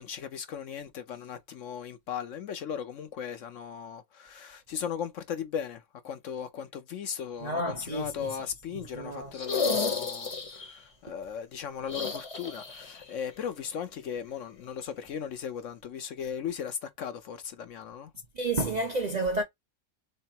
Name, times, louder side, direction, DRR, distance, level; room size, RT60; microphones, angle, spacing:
voice 1, 0.0-18.1, left 8 dB, 65° left, 0.8 m, -37 dB
voice 2, 7.4-8.4 8.9-9.3 18.4-19.4, right 2 dB, 65° right, 0.4 m, -30 dB
sound 1, 9.3-10.7 11.8-13.0 13.3-13.4 15.0-15.1, left 4 dB, 30° left, 0.7 m, -32 dB
3.8 x 3.3 x 4.3 m
omnidirectional pair, 1.6 m